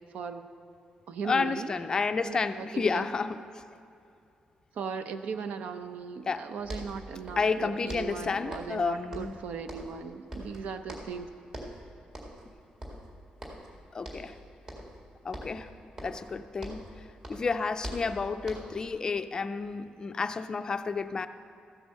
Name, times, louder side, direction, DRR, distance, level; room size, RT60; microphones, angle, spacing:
voice 1, 0.1-0.5 1.1-1.7 2.2-3.0 4.7-11.3, right 6 dB, 70° right, 10 dB, 0.6 m, -38 dB
voice 2, 1.2-3.6 6.3-6.5 7.4-9.3 13.9-14.4 15.2-15.7 16.0-16.8 17.3-21.3, left 4 dB, 30° left, 10 dB, 0.4 m, -31 dB
sound 1, 6.3-6.4 6.6-7.6 7.9-8.8 9.1-10.0 10.3-11.2 11.5-11.8 12.1-12.5 12.8-13.7 14.0-14.4 14.7-15.0 15.3-17.0 17.2-18.8, equal, 30° right, 1.9 m, -42 dB
14.0 x 8.0 x 6.5 m, 2.6 s
wide cardioid pair, 165°, 3 cm